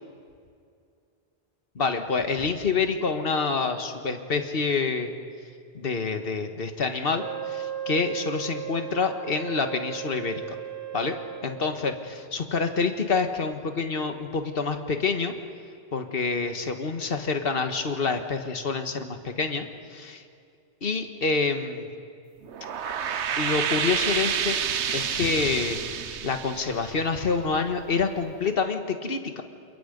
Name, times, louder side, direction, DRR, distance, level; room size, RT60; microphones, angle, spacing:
voice 1, 1.7-5.1 5.7-10.6 10.9-11.2 11.4-15.3 15.9-20.2 20.8-21.9 23.4-24.6 24.9-25.8 26.2-29.4, left 4 dB, 55° left, 6 dB, 1.7 m, -27 dB
Wind instrument woodwind instrument, 7.1-11.8, right 10 dB, 60° right, 2.0 m, -36 dB
sound 1, 22.4-27.7, right 7 dB, 80° right, 1.1 m, -29 dB
28.5 x 28.0 x 5.3 m, 2.3 s
omnidirectional pair, 1.1 m